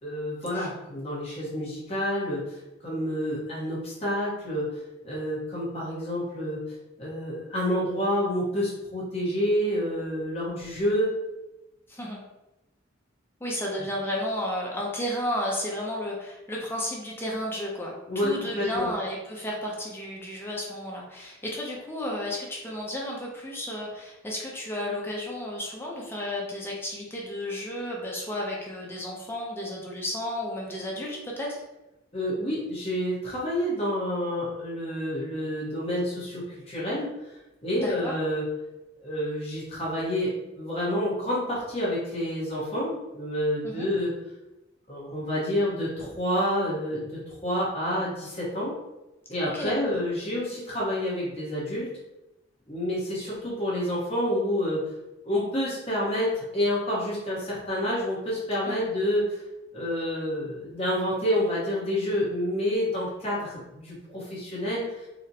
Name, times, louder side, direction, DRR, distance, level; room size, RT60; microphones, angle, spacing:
voice 1, 0.0-4.7 5.0-11.1 18.1-18.9 32.1-37.1 37.6-38.4 39.0-40.3 40.6-44.1 44.9-48.7 49.3-51.9 52.7-54.9 55.2-59.4 59.7-64.8, equal, 30° left, -7 dB, 0.9 m, -28 dB
voice 2, 11.9-12.2 13.4-31.6 37.8-38.1 43.6-43.9 49.5-49.7 58.7-58.9, left 1 dB, 10° left, -3 dB, 0.5 m, -33 dB
4.0 x 2.0 x 2.7 m, 1.0 s
head